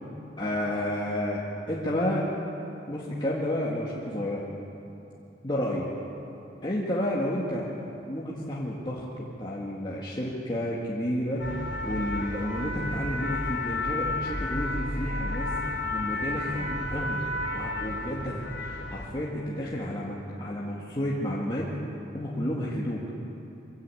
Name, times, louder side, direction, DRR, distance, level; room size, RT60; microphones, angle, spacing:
voice 1, 0.4-2.3 2.9-4.4 5.4-5.9 6.6-7.7 8.1-11.5 11.8-15.5 15.9-17.2 17.5-21.7 22.1-23.0, left 1 dB, 25° left, -5 dB, 2.0 m, -31 dB
sound 1, 11.4-19.1, left 2 dB, 70° left, 3.9 m, -32 dB
24.0 x 15.0 x 8.6 m, 2.9 s
head